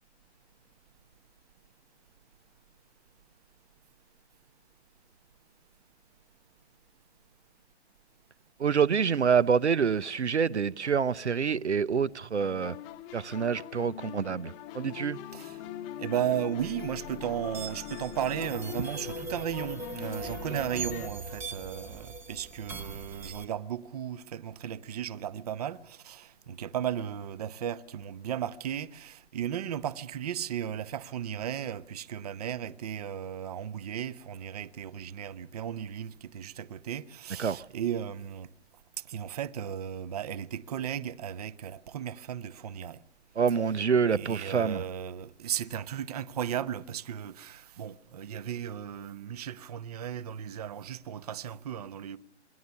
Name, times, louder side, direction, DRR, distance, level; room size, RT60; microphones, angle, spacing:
voice 1, 8.6-12.8 13.1-15.2 37.4-37.7 43.4-44.8, right 6 dB, 75° right, 0.9 m, -27 dB
sound 1, 12.4-21.1, left 12 dB, 15° left, 1.0 m, -42 dB
voice 2, 16.0-38.5 39.1-43.0 44.1-52.2, right 9 dB, 35° right, 0.9 m, -35 dB
sound 2, 16.6-23.4, right 3 dB, 5° right, 0.9 m, -41 dB
27.0 x 22.0 x 6.9 m
figure-of-eight pair, 140°, 35 cm